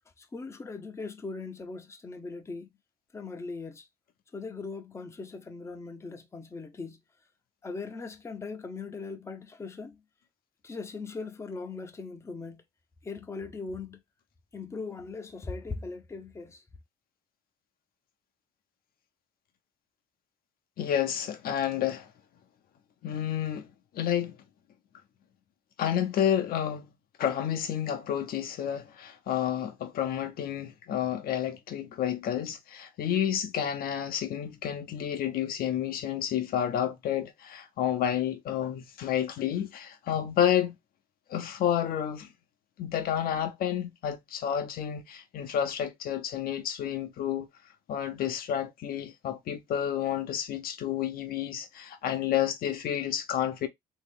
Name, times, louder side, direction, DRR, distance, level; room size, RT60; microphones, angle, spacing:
voice 1, 0.2-2.7 3.1-3.9 4.3-7.0 7.6-10.0 10.6-12.6 13.0-14.0 14.5-16.6, left 4 dB, 15° left, 0.6 m, -39 dB
voice 2, 20.8-22.1 23.0-23.7 23.9-24.4 25.8-26.9 27.2-40.8 41.3-42.3 42.8-47.5 47.9-53.7, left 10 dB, 60° left, 0.7 m, -30 dB
3.0 x 2.7 x 3.4 m
cardioid pair, 110°, 17 cm